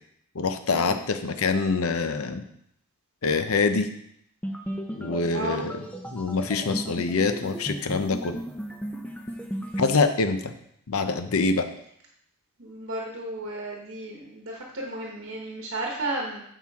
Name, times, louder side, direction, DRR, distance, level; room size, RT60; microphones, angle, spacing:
voice 1, 0.3-2.4 3.2-3.9 5.0-5.8 6.1-8.4 9.8-10.5 10.9-11.7, left 4 dB, 80° left, 8 dB, 0.7 m, -25 dB
sound 1, 4.4-10.0, equal, 5° left, 0.6 m, -35 dB
voice 2, 5.3-5.6 12.6-16.4, right 2 dB, 60° right, -1 dB, 1.1 m, -33 dB
8.7 x 5.7 x 3.6 m, 0.71 s
head